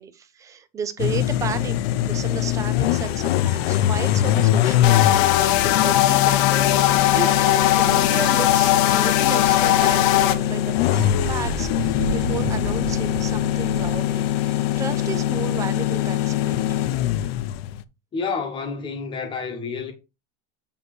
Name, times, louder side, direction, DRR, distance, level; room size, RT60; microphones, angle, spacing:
voice 1, 0.0-1.8 2.1-5.3 5.6-16.6, right 7 dB, 10° right, 0.3 m, -33 dB
sound 1, 1.0-17.8, left 12 dB, 90° left, 0.7 m, -23 dB
sound 2, 4.8-10.3, left 13 dB, 60° left, 0.9 m, -19 dB
sound 3, 6.7-7.1 7.6-8.8 9.2-13.9, right 3 dB, 90° right, 1.4 m, -33 dB
voice 2, 18.1-19.9, left 5 dB, 15° left, 1.2 m, -29 dB
8.3 x 3.3 x 4.8 m
cardioid pair, 175°, 29 cm